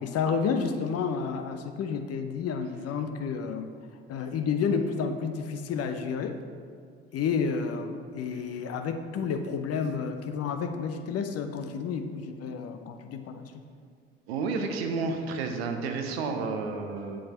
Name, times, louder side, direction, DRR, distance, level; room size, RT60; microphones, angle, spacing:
voice 1, 0.0-3.7 4.1-6.4 7.1-13.6, left 6 dB, 50° left, 7 dB, 0.8 m, -30 dB
voice 2, 14.3-17.3, right 4 dB, 75° right, 5 dB, 0.9 m, -31 dB
7.9 x 7.5 x 4.3 m, 2.2 s
figure-of-eight pair, 50°, 31 cm